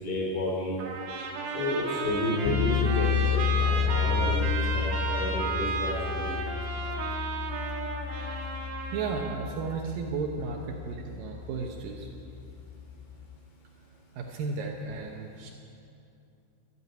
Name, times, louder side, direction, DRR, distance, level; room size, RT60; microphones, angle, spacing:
voice 1, 0.0-0.8 1.5-6.3, left 1 dB, 25° left, -3 dB, 3.2 m, -31 dB
Trumpet, 0.8-9.4, right 4 dB, 65° right, 3.1 m, -33 dB
sound 1, 2.5-13.3, left 8 dB, 85° left, 2.4 m, -31 dB
voice 2, 6.8-7.1 8.9-12.1 14.2-15.5, right 4 dB, 85° right, 1 dB, 1.9 m, -34 dB
14.0 x 11.0 x 8.9 m, 2.6 s
omnidirectional pair, 5.5 m